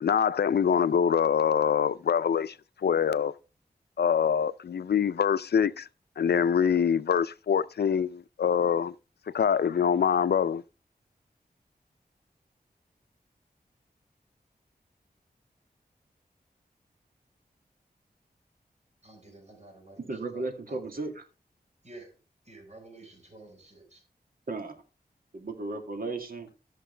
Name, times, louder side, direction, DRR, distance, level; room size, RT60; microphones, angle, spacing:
voice 1, 0.0-3.3 4.0-5.9 6.2-9.0 9.3-10.6, left 7 dB, 90° left, 0.5 m, -25 dB
voice 2, 19.0-20.8 21.8-22.2 22.4-24.0, right 2 dB, 45° right, 4.5 m, -51 dB
voice 3, 20.1-21.2 24.5-24.8 25.3-26.5, right 3 dB, 65° right, 2.2 m, -35 dB
15.0 x 6.6 x 3.3 m
wide cardioid pair, 80°, 16 cm